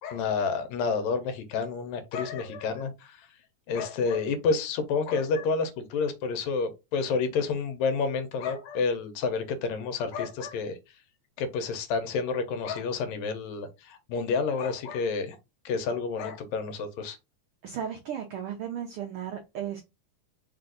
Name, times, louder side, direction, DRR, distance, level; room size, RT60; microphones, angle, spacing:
voice 1, 0.0-3.2 3.7-10.7 11.4-15.4 15.7-17.2, left 4 dB, 75° left, 2.0 m, -29 dB
voice 2, 17.6-19.8, right 9 dB, 90° right, 1.2 m, -35 dB
4.8 x 2.5 x 3.8 m
omnidirectional pair, 3.4 m